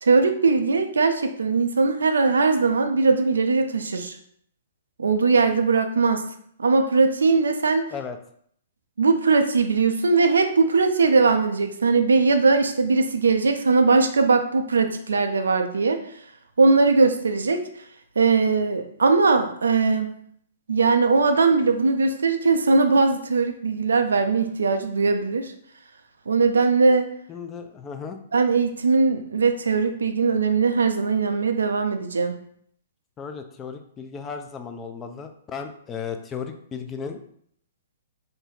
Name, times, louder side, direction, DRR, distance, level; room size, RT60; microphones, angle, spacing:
voice 1, 0.0-4.2 5.0-6.3 6.6-7.9 9.0-16.0 16.6-17.7 18.2-20.1 20.7-25.5 26.3-27.1 28.3-32.3, right 4 dB, 75° right, 7 dB, 0.3 m, -20 dB
voice 2, 27.3-28.2 33.2-37.2, left 6 dB, 20° left, 6 dB, 0.3 m, -35 dB
2.5 x 2.0 x 3.8 m, 0.65 s
figure-of-eight pair, 115°, 0 cm